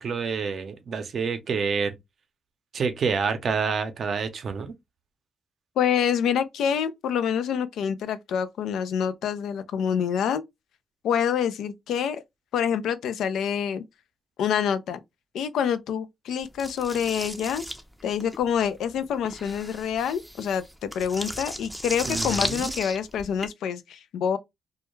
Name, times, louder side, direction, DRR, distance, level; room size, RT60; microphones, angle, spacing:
voice 1, 0.0-1.9 2.7-4.7 22.1-22.7, right 5 dB, 60° right, 0.5 m, -28 dB
voice 2, 5.8-10.4 11.0-12.2 12.5-13.8 14.4-15.0 15.3-17.6 18.0-24.4, left 8 dB, 85° left, 0.3 m, -26 dB
sound 1, 16.6-23.5, equal, ahead, 0.5 m, -35 dB
2.2 x 2.2 x 3.0 m
cardioid pair, 80°, 0 cm